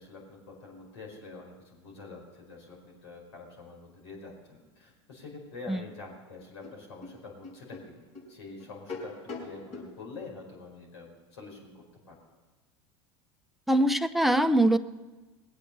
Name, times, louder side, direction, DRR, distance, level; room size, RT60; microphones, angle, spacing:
voice 1, 0.0-9.1 9.4-12.2, left 3 dB, 85° left, 0 dB, 4.9 m, -46 dB
sound 1, 6.6-9.9, left 3 dB, 55° left, 5.0 m, -43 dB
voice 2, 13.7-14.8, right 1 dB, ahead, 9 dB, 0.7 m, -23 dB
20.5 x 8.4 x 6.8 m, 1.2 s
hypercardioid pair, 90°, 14 cm